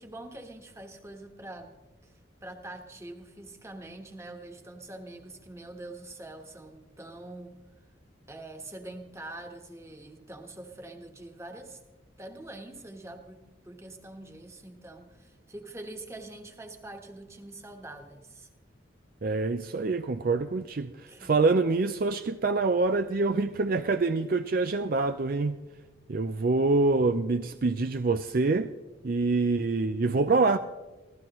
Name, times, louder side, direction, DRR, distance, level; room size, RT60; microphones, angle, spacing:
voice 1, 0.0-1.7 2.0-2.1 2.4-7.6 8.3-11.8 12.2-18.5 21.1-21.4, right 2 dB, 15° right, 1.4 m, -44 dB
voice 2, 19.2-20.9 21.2-25.6 26.1-28.7 29.0-30.6, right 3 dB, 45° right, 0.5 m, -25 dB
25.5 x 16.5 x 3.1 m
head